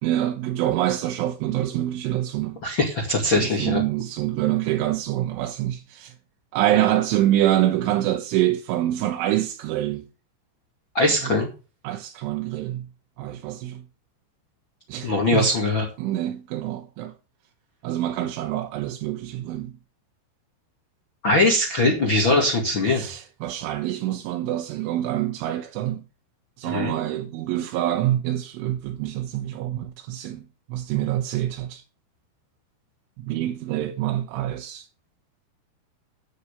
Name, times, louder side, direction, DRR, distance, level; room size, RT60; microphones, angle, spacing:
voice 1, 0.0-2.6 3.2-6.1 6.5-10.0 11.1-11.4 11.8-12.9 13.2-13.8 14.9-15.6 16.0-17.1 17.8-19.7 22.9-26.0 26.6-31.8 33.2-34.9, right 13 dB, 85° right, 3.4 m, -26 dB
voice 2, 2.6-3.8 10.9-11.5 15.0-15.9 21.2-23.0 26.6-26.9, left 2 dB, 40° left, 1.9 m, -21 dB
9.7 x 8.6 x 6.8 m
omnidirectional pair, 5.6 m